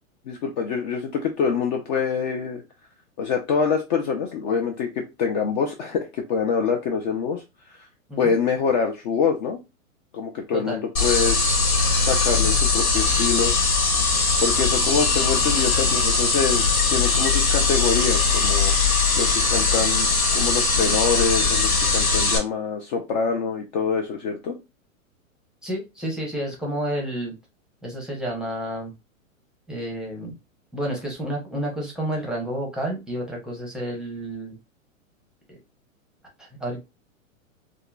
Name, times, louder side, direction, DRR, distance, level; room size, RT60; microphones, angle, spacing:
voice 1, 0.3-2.6 3.2-7.4 8.2-9.6 10.1-11.3 12.0-13.5 14.4-18.7 19.2-24.5, left 6 dB, 35° left, 2 dB, 0.4 m, -25 dB
sound 1, 11.0-22.4, left 4 dB, 90° left, 1.4 m, -20 dB
voice 2, 25.6-27.3 27.8-28.9 29.7-30.3 30.7-34.5 35.5-35.6 36.4-36.8, right 1 dB, ahead, -1 dB, 0.6 m, -30 dB
3.6 x 2.0 x 2.2 m, 0.25 s
hypercardioid pair, 120°, 41 cm